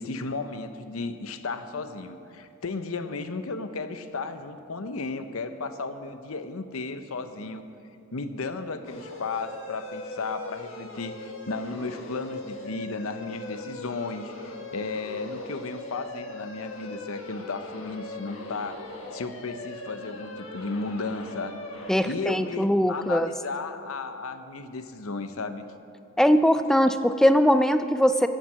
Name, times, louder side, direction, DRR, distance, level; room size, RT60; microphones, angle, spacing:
voice 1, 0.0-7.7 8.1-18.8 19.1-21.6 22.0-25.6, left 3 dB, 90° left, 10 dB, 0.7 m, -34 dB
sound 1, 8.8-21.9, left 2 dB, 70° left, 1.6 m, -40 dB
voice 2, 21.9-23.3 26.2-28.3, equal, ahead, 10 dB, 0.4 m, -21 dB
15.0 x 7.4 x 7.4 m, 2.6 s
head